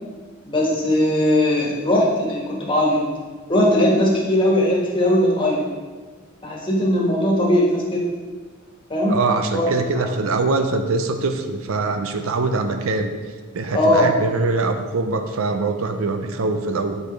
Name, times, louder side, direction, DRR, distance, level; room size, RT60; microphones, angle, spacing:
voice 1, 0.4-3.0 3.5-5.6 6.4-8.0 8.9-9.2 9.5-9.7 10.0-10.1 13.7-14.1, left 1 dB, 25° left, -4 dB, 1.5 m, -19 dB
voice 2, 9.1-13.1 13.5-17.0, right 3 dB, 75° right, 7 dB, 0.5 m, -23 dB
8.0 x 5.1 x 3.2 m, 1.4 s
head